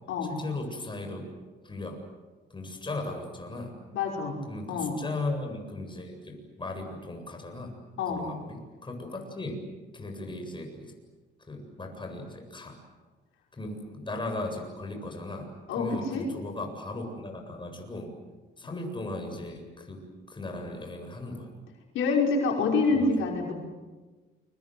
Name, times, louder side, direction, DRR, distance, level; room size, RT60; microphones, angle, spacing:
voice 1, 0.3-1.3 1.6-2.0 2.5-3.7 4.5-7.7 8.1-9.6 9.9-10.9 11.5-12.8 13.5-15.5 15.8-18.1 18.6-21.5 22.9-23.1, left 2 dB, 25° left, 3 dB, 7.8 m, -37 dB
voice 2, 3.9-4.4 4.7-5.0 8.0-8.2 15.7-16.3 21.9-23.5, left 4 dB, 85° left, 0 dB, 5.6 m, -26 dB
29.0 x 24.0 x 7.9 m, 1.3 s
cardioid pair, 90°, 20 cm